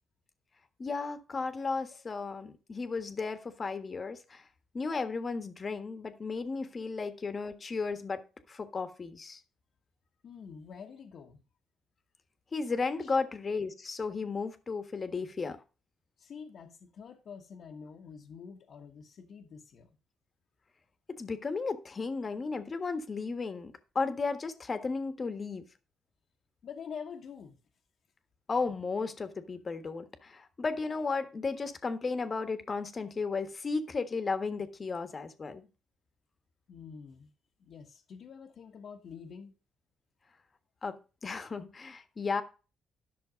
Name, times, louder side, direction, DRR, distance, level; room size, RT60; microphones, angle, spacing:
voice 1, 0.8-4.4 4.7-8.2 8.5-9.4 12.5-15.6 21.2-25.6 28.5-35.7 40.8-40.9 41.2-42.4, left 4 dB, 35° left, 1.5 m, -34 dB
voice 2, 10.2-11.4 13.0-13.2 16.2-19.9 26.6-27.6 36.7-37.3 37.6-39.5, left 6 dB, 60° left, 1.3 m, -47 dB
11.0 x 6.3 x 5.1 m
cardioid pair, 90°, 0 cm